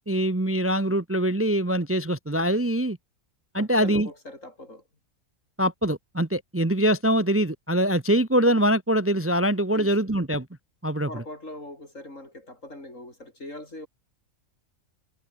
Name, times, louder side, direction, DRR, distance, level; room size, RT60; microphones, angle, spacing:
voice 1, 0.1-3.0 3.5-4.1 5.6-10.5 10.8-11.1, right 1 dB, 10° right, 0.9 m, -23 dB
voice 2, 3.6-4.8 9.7-10.1 11.1-13.9, left 1 dB, 65° left, 8.5 m, -41 dB
omnidirectional pair, 1.4 m